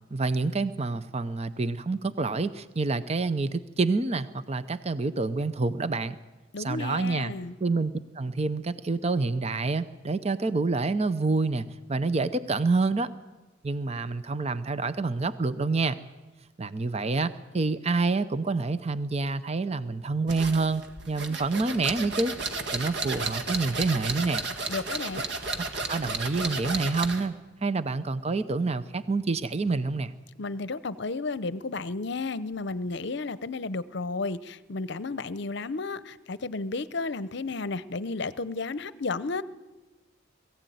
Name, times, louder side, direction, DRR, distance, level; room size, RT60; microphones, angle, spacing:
voice 1, 0.1-6.2 6.6-7.3 7.6-13.1 13.6-16.0 16.6-22.3 22.7-24.4 25.9-27.3 27.6-30.1, right 3 dB, 30° right, 13 dB, 0.7 m, -27 dB
voice 2, 6.5-7.5 24.7-25.3 30.4-39.4, left 3 dB, 60° left, 16 dB, 0.7 m, -33 dB
sound 1, 20.3-27.3, right 3 dB, 60° right, 1.9 m, -33 dB
21.0 x 15.5 x 9.3 m, 1.2 s
head